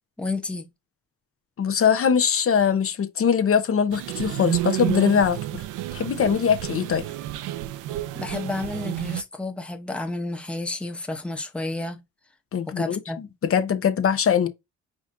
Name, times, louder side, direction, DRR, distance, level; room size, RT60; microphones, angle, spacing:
voice 1, 0.2-0.7 8.1-12.0 12.8-13.2, left 2 dB, 5° left, 0.9 m, -31 dB
voice 2, 1.6-5.4 5.9-7.0 12.5-13.0 13.4-14.5, left 7 dB, 45° left, 0.8 m, -21 dB
sound 1, 3.9-9.2, right 14 dB, 90° right, 0.5 m, -30 dB
5.0 x 3.8 x 2.6 m
cardioid pair, 90°, 30 cm